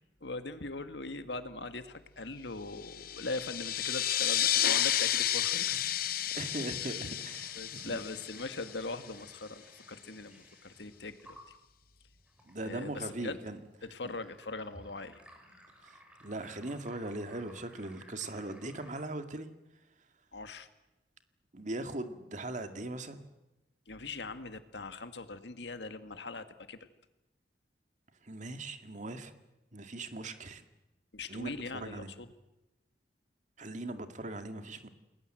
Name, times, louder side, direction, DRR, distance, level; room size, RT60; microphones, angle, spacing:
voice 1, 0.2-6.0 6.8-7.1 7.5-11.5 12.6-13.4 13.8-15.2 20.3-20.7 23.9-26.8 31.1-32.3, left 3 dB, 80° left, 10 dB, 1.9 m, -41 dB
sound 1, 2.8-9.1, left 11 dB, 55° left, 0.8 m, -31 dB
sound 2, 5.6-19.0, equal, 5° right, 4.8 m, -58 dB
voice 2, 6.3-8.0 12.5-13.6 15.8-19.5 21.5-23.2 28.2-29.3 29.7-30.6 31.3-32.1 33.6-34.9, right 2 dB, 45° right, 8 dB, 2.1 m, -40 dB
29.0 x 20.5 x 7.8 m, 0.99 s
head